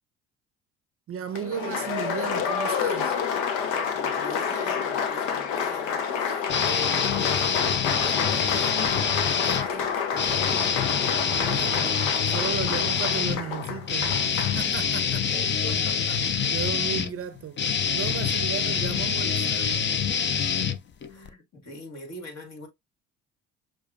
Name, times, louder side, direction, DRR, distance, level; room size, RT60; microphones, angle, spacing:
voice 1, 1.1-3.2 11.3-12.0 12.3-15.3 16.5-17.6 17.9-19.9, right 9 dB, 40° right, 0.6 m, -35 dB
Applause, 1.3-14.6, left 7 dB, 80° left, 0.8 m, -29 dB
voice 2, 3.9-7.8 8.0-10.9 11.6-12.1 15.3-16.3 21.1-22.7, left 2 dB, 50° left, 2.0 m, -42 dB
sound 1, 6.5-9.7 10.1-21.3, left 7 dB, 30° left, 0.6 m, -26 dB
6.3 x 2.4 x 2.5 m
hypercardioid pair, 60°, 36 cm